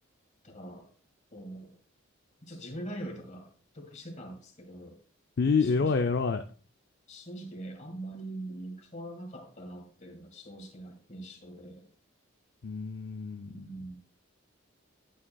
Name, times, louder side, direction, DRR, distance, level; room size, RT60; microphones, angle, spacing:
voice 1, 0.4-0.9 1.3-1.7 2.4-5.0 5.6-5.9 7.1-11.9 13.5-14.0, right 1 dB, 35° left, 3 dB, 1.9 m, -43 dB
voice 2, 5.4-6.4 12.6-13.7, left 4 dB, 50° left, 7 dB, 0.4 m, -27 dB
11.0 x 8.7 x 2.3 m, 0.41 s
head